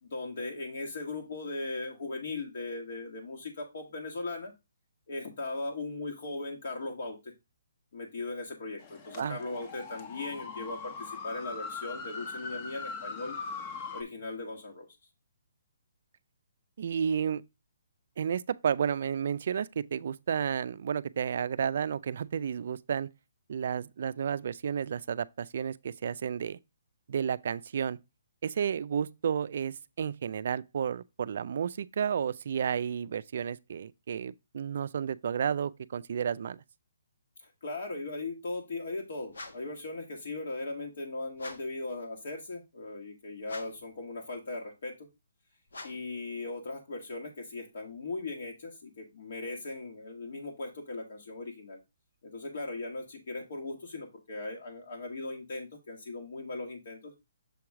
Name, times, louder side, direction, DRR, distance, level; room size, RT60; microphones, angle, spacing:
voice 1, 0.0-4.5 5.1-7.3 7.9-13.4 13.9-14.9 37.4-45.1 45.8-51.8 52.2-57.1, left 2 dB, 60° left, 1.5 m, -38 dB
sound 1, 8.8-14.0, left 4 dB, 30° left, 0.9 m, -41 dB
voice 2, 16.8-17.4 18.2-23.1 23.5-26.6 27.1-28.0 28.4-36.6, right 7 dB, 55° right, 0.3 m, -32 dB
sound 2, 39.3-39.8 41.3-41.8 43.4-43.9 45.7-46.2, left 2 dB, 90° left, 1.4 m, -45 dB
6.9 x 3.1 x 4.7 m
hypercardioid pair, 160°, 0 cm